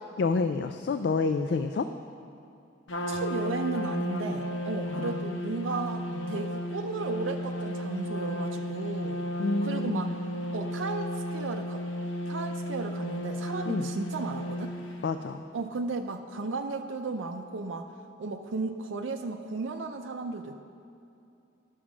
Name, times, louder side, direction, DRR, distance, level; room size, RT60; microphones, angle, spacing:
voice 1, 0.2-1.9 4.9-5.2 6.2-6.4 9.4-10.2 13.7-13.9 15.0-15.4, left 4 dB, 60° left, 8 dB, 0.3 m, -29 dB
Trumpet, 2.9-15.0, equal, 85° left, 0.8 m, -34 dB
voice 2, 3.1-9.2 9.6-10.1 10.5-11.8 12.3-14.7 15.5-17.9 18.2-20.6, right 3 dB, 85° right, 4 dB, 0.5 m, -34 dB
11.5 x 6.3 x 6.1 m, 2.6 s
head